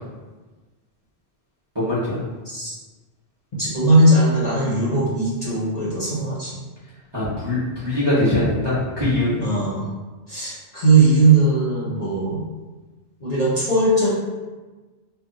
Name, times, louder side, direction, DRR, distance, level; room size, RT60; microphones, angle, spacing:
voice 1, 1.7-2.2 7.1-9.4, left 1 dB, 30° right, -9 dB, 0.6 m, -22 dB
voice 2, 3.6-6.6 9.4-9.9 10.3-12.4 13.2-14.1, right 2 dB, 45° left, -8 dB, 0.6 m, -19 dB
2.2 x 2.1 x 3.6 m, 1.3 s
omnidirectional pair, 1.2 m